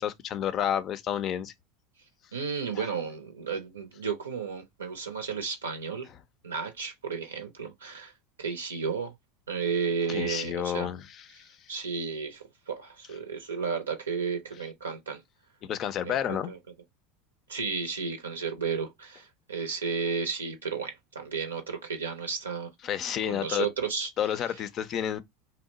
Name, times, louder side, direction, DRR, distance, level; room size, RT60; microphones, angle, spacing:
voice 1, 0.0-1.5 10.1-11.6 15.6-16.5 22.8-23.7 24.2-25.2, left 10 dB, 45° left, 0.4 m, -30 dB
voice 2, 2.3-6.1 6.4-8.1 8.4-9.1 9.5-10.9 11.4-15.2 16.0-16.6 17.5-22.7 23.3-24.1, right 6 dB, 85° right, 0.6 m, -33 dB
2.8 x 2.0 x 3.9 m
hypercardioid pair, 80°, 0 cm